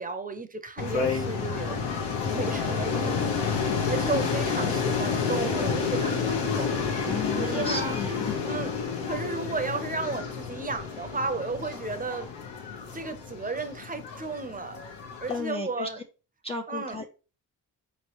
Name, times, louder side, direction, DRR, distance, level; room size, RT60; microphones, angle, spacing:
voice 1, 0.0-3.2 3.6-6.8 7.3-8.0 8.4-12.3 12.9-14.9 15.2-16.0 16.7-17.0, right 3 dB, 20° right, 0.7 m, -34 dB
sound 1, 0.8-15.4, left 5 dB, 80° left, 1.0 m, -30 dB
voice 2, 7.1-8.6 15.3-15.9 16.4-17.1, left 4 dB, 15° left, 0.4 m, -34 dB
4.2 x 3.2 x 3.0 m
cardioid pair, 70°, 41 cm